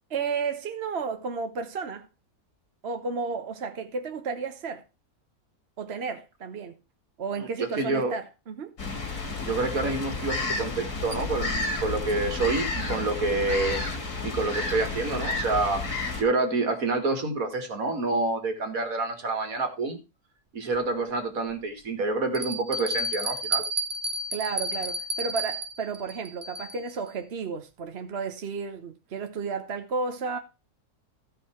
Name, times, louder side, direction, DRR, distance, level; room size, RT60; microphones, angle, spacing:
voice 1, 0.1-2.1 2.8-4.8 5.8-6.8 7.2-8.7 24.3-30.4, right 5 dB, 50° right, 1.1 m, -32 dB
voice 2, 7.4-8.1 9.5-15.8 16.2-20.0 20.5-23.6, right 3 dB, 65° right, 2.3 m, -28 dB
sound 1, 8.8-16.2, left 3 dB, 70° left, 2.7 m, -31 dB
Bell, 20.7-20.8 21.5-21.6 22.3-26.9, right 1 dB, 30° right, 0.5 m, -31 dB
14.5 x 5.6 x 4.4 m
omnidirectional pair, 1.6 m